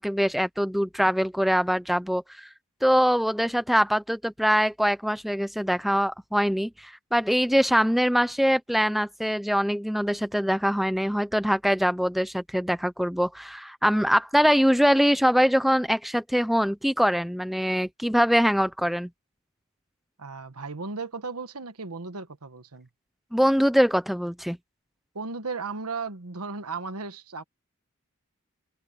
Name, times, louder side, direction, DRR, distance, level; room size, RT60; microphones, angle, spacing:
voice 1, 0.0-2.5 2.8-19.1 23.3-24.6, equal, ahead, 0.5 m, -23 dB
voice 2, 20.2-22.9 25.1-27.4, right 4 dB, 85° right, 1.3 m, -35 dB
head